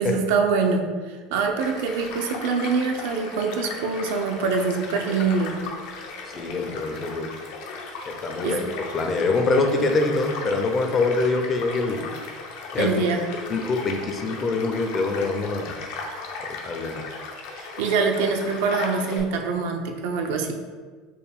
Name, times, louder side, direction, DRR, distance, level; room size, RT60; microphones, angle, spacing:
voice 1, 0.0-5.6 8.4-8.6 12.8-13.2 17.6-20.6, right 4 dB, 80° right, 4 dB, 0.4 m, -24 dB
Child speech kid speaking / Stream / Car passing by, 1.6-19.2, left 4 dB, 70° left, 0.6 m, -36 dB
voice 2, 6.3-7.3 8.1-8.7 8.9-12.1 12.7-12.9 13.5-15.7 16.6-17.0, left 3 dB, 25° left, 4 dB, 0.4 m, -24 dB
4.4 x 2.2 x 3.5 m, 1.5 s
supercardioid pair, 140°, 0 cm